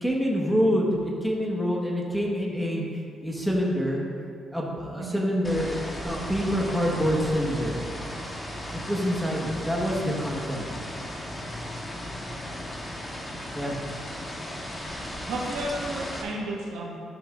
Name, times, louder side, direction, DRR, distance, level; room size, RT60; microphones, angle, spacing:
voice 1, 0.0-2.8 3.2-4.0 4.5-5.8 6.0-7.7 8.9-10.7 13.5-13.8, equal, ahead, -3 dB, 1.5 m, -26 dB
sound 1, 5.4-16.2, left 1 dB, 20° left, 1.3 m, -36 dB
voice 2, 15.2-17.0, right 1 dB, 85° right, -2 dB, 1.4 m, -32 dB
13.0 x 6.0 x 2.6 m, 2.4 s
cardioid pair, 90°, 0 cm